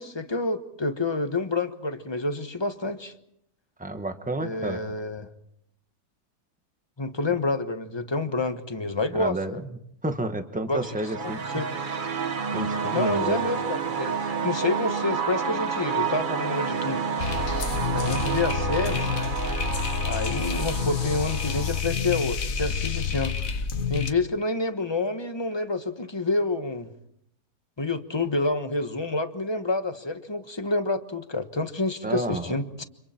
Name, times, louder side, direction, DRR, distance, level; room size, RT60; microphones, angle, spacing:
voice 1, 0.0-3.1 4.4-5.3 7.0-9.6 10.7-10.8 11.2-11.7 12.9-14.2 14.4-17.0 17.9-19.1 20.1-23.5 23.9-26.9 27.8-32.8, left 2 dB, 20° left, 8 dB, 1.1 m, -28 dB
voice 2, 3.8-4.8 9.1-9.6 10.0-11.4 12.5-13.4 32.0-32.5, right 2 dB, 5° right, 7 dB, 1.2 m, -30 dB
sound 1, 10.8-21.8, right 6 dB, 35° right, 1.0 m, -30 dB
sound 2, 17.2-24.1, left 6 dB, 60° left, 1.5 m, -28 dB
30.0 x 26.0 x 4.4 m, 0.76 s
omnidirectional pair, 1.7 m